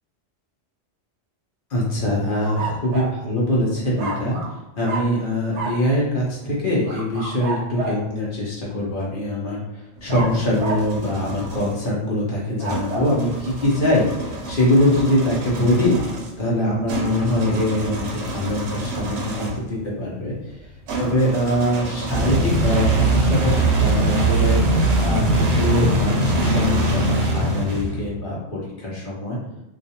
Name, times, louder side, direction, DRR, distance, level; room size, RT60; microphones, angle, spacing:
voice 1, 1.7-4.3 4.8-16.0 16.4-20.3 21.0-24.6 25.0-29.4, left 1 dB, 50° left, -5 dB, 0.8 m, -23 dB
sound 1, 2.4-3.2 4.0-4.6 4.8-5.2 5.5-5.8 6.8-8.1 10.1-10.9 12.4-13.1, right 2 dB, 80° right, 0.3 m, -30 dB
sound 2, 10.0-11.8 12.7-19.7 20.9-28.2, right 2 dB, 65° right, 0.8 m, -23 dB
2.3 x 2.3 x 2.7 m, 0.90 s
omnidirectional pair, 1.2 m